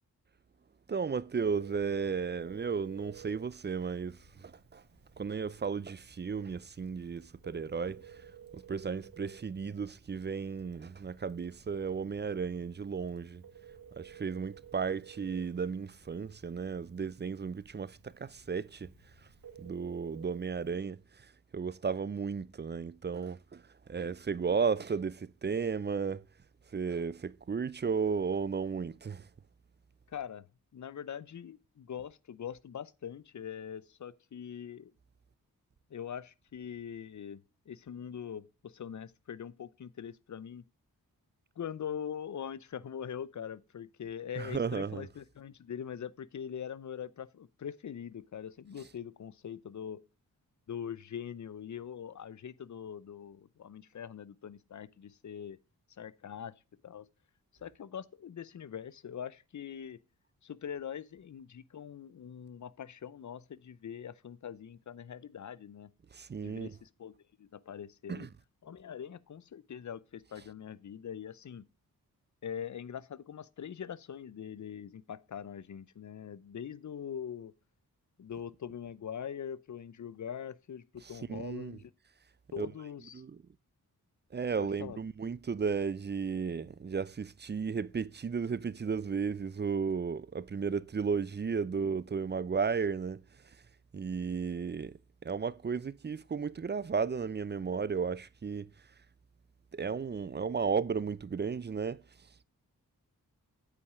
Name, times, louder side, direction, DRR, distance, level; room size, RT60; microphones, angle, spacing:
voice 1, 0.9-4.8 5.2-8.0 8.5-13.4 14.0-18.9 19.6-21.0 21.5-23.6 23.9-26.2 26.7-29.3 44.4-45.1 66.1-66.7 68.1-68.3 81.3-81.8 82.6-82.7 83.1-83.3 84.3-93.2 93.9-98.7 99.7-102.0, right 5 dB, 30° right, 0.5 m, -34 dB
Telephone, 1.4-20.8, right 7 dB, 65° right, 1.8 m, -55 dB
voice 2, 30.1-30.5 30.7-34.9 35.9-37.4 37.7-40.6 41.6-50.0 50.7-55.6 55.9-56.5 56.8-57.1 57.5-60.0 60.4-65.9 66.4-68.3 68.6-71.7 72.4-77.5 78.2-81.9 82.5-83.2 84.6-85.0, left 8 dB, 50° left, 0.7 m, -43 dB
8.5 x 5.0 x 6.0 m
cardioid pair, 45°, 37 cm